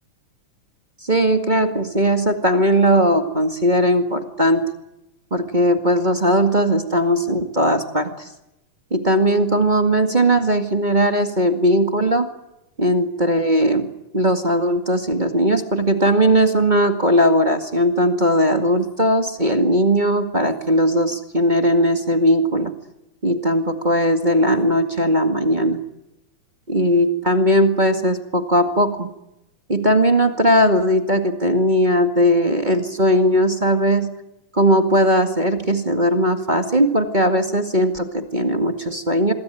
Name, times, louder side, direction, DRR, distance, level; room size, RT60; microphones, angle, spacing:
voice 1, 1.0-4.7 5.3-8.1 8.9-12.3 12.8-13.9 14.1-22.7 23.2-25.8 26.7-29.1 29.7-34.1 34.5-39.3, equal, 20° right, 6 dB, 1.3 m, -18 dB
27.0 x 23.0 x 9.2 m, 0.91 s
omnidirectional pair, 4.0 m